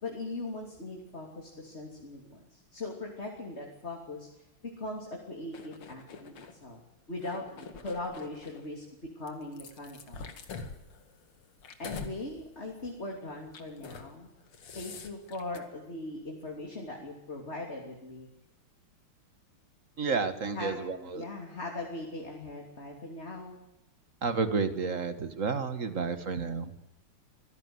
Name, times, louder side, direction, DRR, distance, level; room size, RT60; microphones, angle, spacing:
voice 1, 0.0-4.3 4.8-6.8 7.1-8.8 9.2-10.2 11.8-14.3 14.8-18.3 20.5-20.7 21.1-23.6, left 2 dB, 30° left, 0 dB, 3.4 m, -40 dB
sound 1, 5.5-6.5 7.1-8.7 9.3-12.2 12.6-12.8 13.5-14.1 14.4-15.6, left 5 dB, 85° left, 3.0 m, -45 dB
voice 2, 20.0-21.2 24.2-26.7, right 4 dB, 40° right, 10 dB, 1.9 m, -31 dB
25.5 x 16.5 x 7.9 m, 0.90 s
omnidirectional pair, 2.4 m